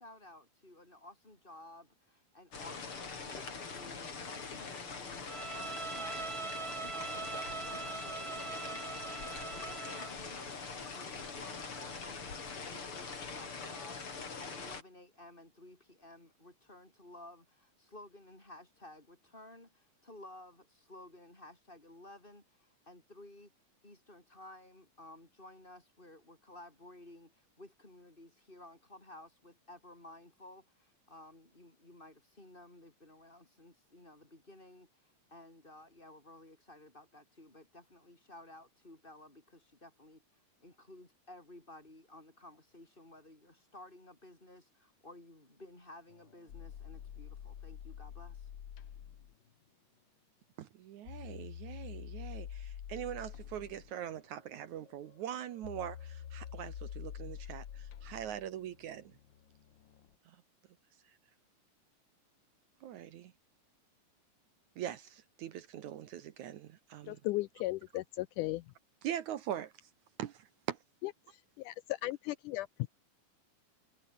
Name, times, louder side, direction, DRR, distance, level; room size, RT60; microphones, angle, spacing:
voice 1, 0.0-14.0 14.4-23.5 23.8-48.5, left 1 dB, 15° left, 5.0 m, -55 dB
sound 1, 2.5-14.8, left 4 dB, 40° left, 4.4 m, -43 dB
Bowed string instrument, 5.3-10.2, right 5 dB, 30° right, 2.3 m, -42 dB
sound 2, 46.1-49.3 51.1-60.1, left 9 dB, 60° left, 1.2 m, -47 dB
voice 2, 50.6-59.1 62.8-63.3 64.8-67.2 69.0-69.7 70.2-70.8, right 11 dB, 65° right, 2.3 m, -42 dB
voice 3, 67.1-68.6 71.6-72.9, left 17 dB, 80° left, 2.0 m, -36 dB
omnidirectional pair, 3.9 m